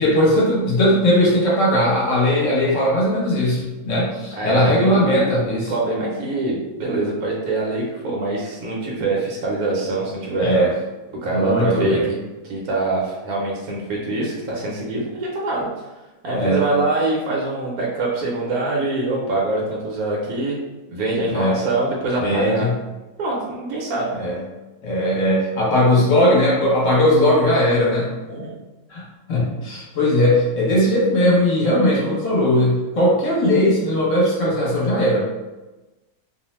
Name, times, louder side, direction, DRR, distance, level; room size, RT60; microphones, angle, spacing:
voice 1, 0.0-5.7 10.4-10.7 11.3-12.0 16.3-16.6 21.3-21.5 22.2-22.7 24.1-24.4 24.8-28.1 28.9-29.0 29.3-35.2, left 1 dB, 60° left, -5 dB, 1.1 m, -18 dB
voice 2, 4.3-10.5 11.2-15.7 16.2-20.6 20.9-22.7 23.2-24.1 28.3-28.5, right 2 dB, 70° right, -3 dB, 1.0 m, -24 dB
2.7 x 2.1 x 3.0 m, 1.1 s
omnidirectional pair, 1.7 m